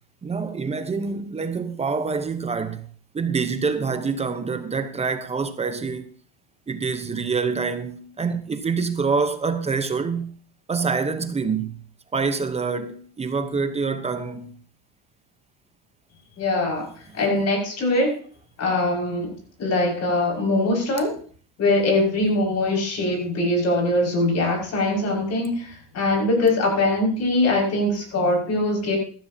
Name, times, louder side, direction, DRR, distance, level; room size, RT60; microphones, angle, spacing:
voice 1, 0.2-2.9 3.1-6.1 6.7-10.4 10.7-11.8 12.1-14.5 16.8-17.5 21.0-21.1, right 5 dB, 15° right, 0.9 m, -26 dB
voice 2, 16.4-18.1 18.6-19.3 19.6-21.1 21.6-29.0, left 2 dB, 40° left, 5.8 m, -22 dB
14.5 x 13.5 x 2.8 m
cardioid pair, 135°, 39 cm